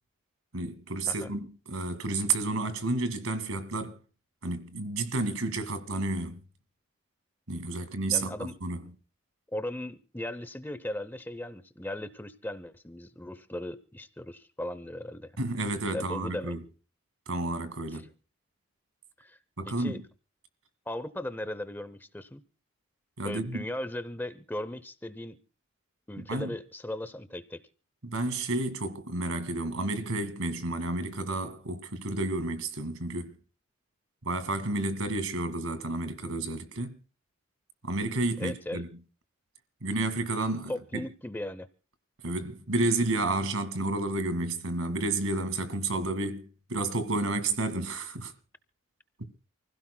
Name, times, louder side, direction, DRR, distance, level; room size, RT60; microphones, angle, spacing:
voice 1, 0.5-4.0 4.4-6.4 7.5-8.9 15.4-16.6 17.3-18.1 19.6-20.0 23.2-23.6 26.2-26.5 28.0-33.4 34.2-37.0 37.8-38.9 39.8-41.0 42.2-48.3, right 2 dB, 90° right, 2.0 m, -31 dB
voice 2, 8.1-8.6 9.5-15.3 15.9-16.6 19.2-19.4 19.7-20.0 20.9-22.4 23.2-25.4 26.1-27.6 38.4-38.8 40.7-41.7, left 1 dB, 10° left, 0.6 m, -37 dB
29.0 x 16.0 x 2.2 m
head